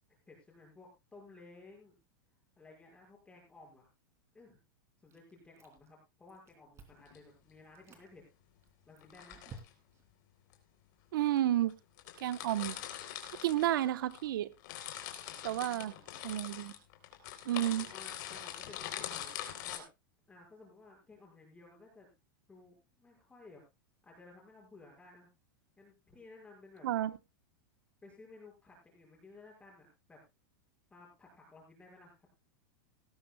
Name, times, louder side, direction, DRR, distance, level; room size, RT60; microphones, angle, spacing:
voice 1, 0.3-1.9 2.6-3.9 4.3-4.6 5.0-8.3 8.9-9.4 15.3-16.3 17.8-19.9 20.3-22.1 22.5-23.6 24.0-25.3 25.8-26.9 28.0-30.2 30.9-32.3, left 3 dB, 10° left, -1 dB, 5.6 m, -57 dB
Chewing mastication, 5.1-6.0 6.3-7.1 7.6-8.1 8.6-10.1, right 3 dB, 25° right, 3.0 m, -54 dB
sound 1, 6.9-7.2 9.0-9.7 10.5-10.6 11.4-11.5 11.7-11.8 12.0-14.2 14.5-19.8, left 11 dB, 60° left, 3.5 m, -43 dB
voice 2, 11.1-11.7 12.2-12.8 13.4-14.5 15.4-15.9 16.2-16.7 17.4-17.9 26.8-27.2, right 13 dB, 75° right, 14 dB, 1.0 m, -31 dB
18.5 x 13.5 x 2.2 m, 0.24 s
supercardioid pair, 140°, 11 cm